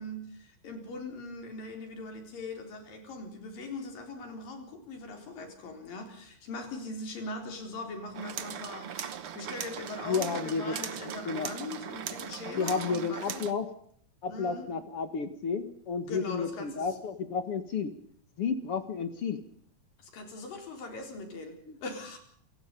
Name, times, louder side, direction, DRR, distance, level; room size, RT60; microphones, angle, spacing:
voice 1, 0.0-13.4 14.3-14.7 16.0-16.9 20.0-21.6 21.8-22.2, left 2 dB, 65° left, 5 dB, 5.8 m, -41 dB
sound 1, 8.1-13.5, right 9 dB, 65° right, 1.4 m, -39 dB
voice 2, 10.0-10.7 11.3-11.5 12.5-13.7 14.2-17.9 18.4-19.4 21.7-21.8, left 5 dB, 45° left, 10 dB, 2.1 m, -32 dB
28.0 x 17.5 x 5.4 m, 0.62 s
omnidirectional pair, 4.3 m